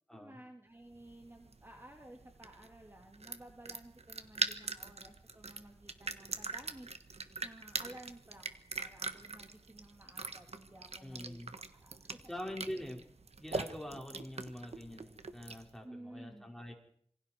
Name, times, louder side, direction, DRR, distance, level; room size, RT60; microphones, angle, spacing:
voice 1, 0.1-6.9 7.4-8.4 8.8-11.4 11.7-12.3 15.8-16.7, right 1 dB, 20° right, 2 dB, 2.8 m, -54 dB
sound 1, 0.9-15.8, right 3 dB, 75° right, 1.6 m, -42 dB
voice 2, 11.0-11.5 12.3-13.0 13.4-16.7, equal, 5° left, 0 dB, 5.5 m, -44 dB
27.0 x 24.5 x 4.7 m, 0.62 s
wide cardioid pair, 60°, 11 cm